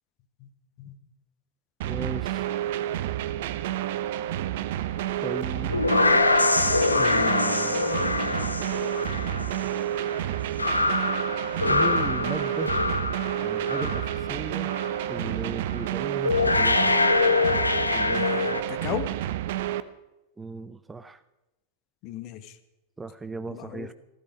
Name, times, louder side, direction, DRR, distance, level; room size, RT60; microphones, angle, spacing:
sound 1, 1.8-19.8, right 12 dB, 55° right, 0.7 m, -30 dB
voice 1, 1.9-2.5 5.2-6.2 7.0-8.0 11.7-12.7 13.4-14.7 15.1-16.9 17.9-18.3 20.4-21.2 23.0-23.9, right 3 dB, 10° right, 13 dB, 0.6 m, -36 dB
sound 2, 5.4-14.3 14.6-15.0 15.8-15.9 16.2-18.6, left 3 dB, 80° left, 0.8 m, -24 dB
voice 2, 18.1-19.1 22.0-22.6 23.5-23.9, left 12 dB, 40° left, 12 dB, 1.1 m, -36 dB
15.0 x 13.5 x 4.9 m, 1.0 s
figure-of-eight pair, 90°, 0 cm